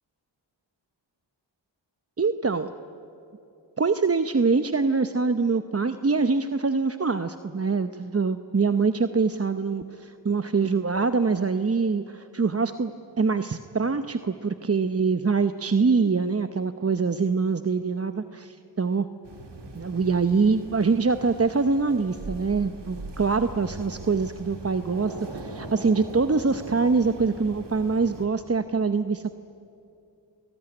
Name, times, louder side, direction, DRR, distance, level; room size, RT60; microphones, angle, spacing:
voice 1, 2.2-2.7 3.8-19.1 19.7-29.3, right 4 dB, 30° right, 10 dB, 0.9 m, -24 dB
sound 1, 19.2-28.3, right 2 dB, 65° right, 3.1 m, -40 dB
27.5 x 19.5 x 9.9 m, 2.8 s
cardioid pair, 45°, 45 cm